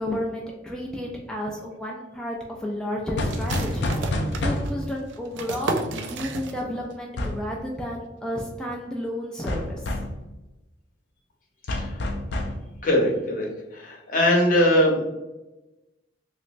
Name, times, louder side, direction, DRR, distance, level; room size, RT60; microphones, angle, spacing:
voice 1, 0.0-9.9, left 1 dB, 5° left, -3 dB, 0.4 m, -32 dB
sound 1, 3.2-4.9 7.2-7.5 9.5-10.2 11.7-12.6, left 1 dB, 70° left, 0.5 m, -27 dB
sound 2, 3.3-6.9 7.2-7.3 7.7-8.2, right 3 dB, 85° right, 0.4 m, -33 dB
voice 2, 12.8-13.5 13.7-15.1, equal, 50° left, -1 dB, 0.8 m, -21 dB
3.2 x 3.0 x 2.5 m, 1.0 s
head